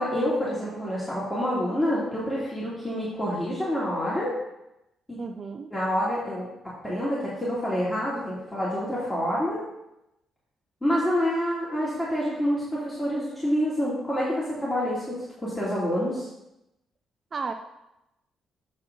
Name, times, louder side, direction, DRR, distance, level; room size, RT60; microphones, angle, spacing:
voice 1, 0.0-4.3 5.1-5.2 5.7-6.5 6.8-9.6 10.8-15.1 15.4-16.3, equal, 15° left, -8 dB, 2.3 m, -27 dB
voice 2, 5.2-5.7 17.3-17.5, right 4 dB, 40° right, 5 dB, 0.5 m, -33 dB
7.6 x 5.8 x 3.8 m, 0.89 s
cardioid pair, 90°, 0 cm